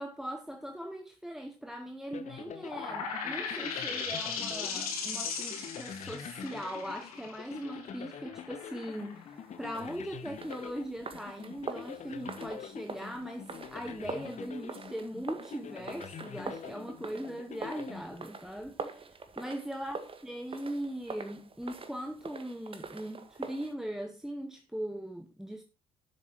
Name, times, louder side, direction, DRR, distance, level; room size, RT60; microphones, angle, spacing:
voice 1, 0.0-25.6, equal, ahead, 1.4 m, -40 dB
sound 1, 2.1-18.7, left 7 dB, 40° left, 1.2 m, -46 dB
sound 2, 2.7-10.0, left 5 dB, 75° left, 2.9 m, -37 dB
sound 3, 9.7-23.7, right 4 dB, 30° right, 1.7 m, -44 dB
12.0 x 7.4 x 4.6 m
figure-of-eight pair, 50°, 19 cm